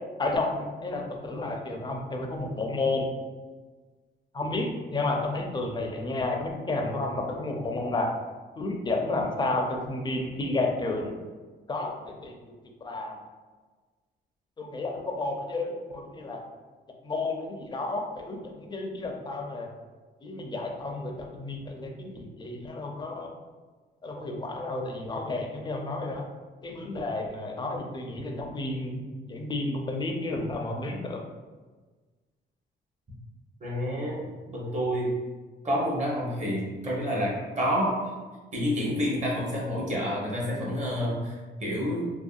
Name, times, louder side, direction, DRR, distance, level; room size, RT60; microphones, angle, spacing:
voice 1, 0.2-3.1 4.3-8.1 8.6-11.1 11.7-12.3 12.8-13.1 14.6-16.4 17.0-19.7 20.2-23.3 24.0-26.3 26.6-29.0 29.3-31.2, left 2 dB, 20° left, 1 dB, 0.4 m, -31 dB
voice 2, 33.6-35.1 35.6-38.0 38.5-42.0, equal, 35° right, -4 dB, 0.9 m, -29 dB
2.7 x 2.2 x 2.3 m, 1.3 s
cardioid pair, 90°, 20 cm